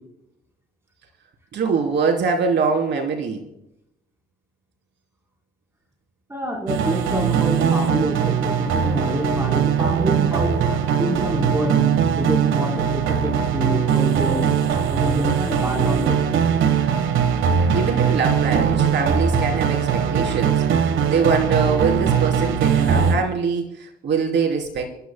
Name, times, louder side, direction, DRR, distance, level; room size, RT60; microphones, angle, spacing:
voice 1, 1.5-3.4 17.7-20.6 21.1-24.9, right 5 dB, 65° right, 2 dB, 3.6 m, -23 dB
voice 2, 6.3-14.5 14.9-16.4, equal, 15° right, 1 dB, 4.1 m, -27 dB
sound 1, 6.7-23.2, right 7 dB, 80° right, 1.4 m, -20 dB
27.0 x 13.0 x 2.3 m, 0.80 s
cardioid pair, 90°, 20 cm